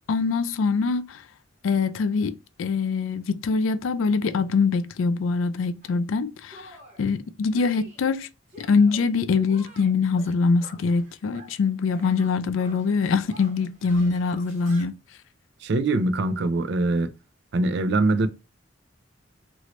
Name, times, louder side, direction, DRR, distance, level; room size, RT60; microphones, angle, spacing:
voice 1, 0.1-1.2 1.6-8.3 8.6-14.9, left 4 dB, 85° left, 0.4 m, -24 dB
Shatter, 5.8-6.0 6.5-7.1 7.5-8.1 8.5-9.1 9.4-11.6 11.9-14.9, equal, 40° right, 1.4 m, -48 dB
voice 2, 15.6-17.1 17.5-18.3, right 2 dB, 60° right, 0.4 m, -23 dB
3.0 x 2.6 x 2.9 m
head